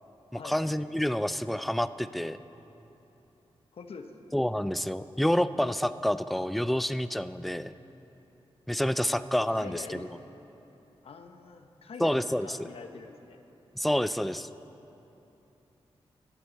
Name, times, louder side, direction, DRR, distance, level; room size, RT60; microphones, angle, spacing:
voice 1, 0.3-2.4 4.3-7.7 8.7-9.8 12.0-12.7 13.8-14.5, equal, ahead, 14 dB, 0.3 m, -28 dB
voice 2, 3.7-4.1 9.0-9.1 9.5-10.1 11.0-13.4, left 5 dB, 75° left, 6 dB, 0.9 m, -45 dB
12.0 x 8.1 x 8.0 m, 3.0 s
wide cardioid pair, 80°, 10 cm